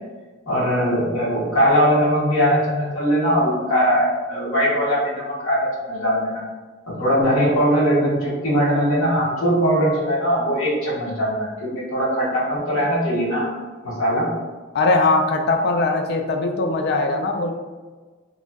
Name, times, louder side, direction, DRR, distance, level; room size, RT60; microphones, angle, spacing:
voice 1, 0.5-5.6 5.9-6.4 7.0-13.5 13.8-14.3, equal, 80° left, -7 dB, 1.2 m, -20 dB
voice 2, 14.7-17.5, left 3 dB, 55° left, 5 dB, 0.3 m, -20 dB
3.0 x 2.5 x 2.2 m, 1.4 s
head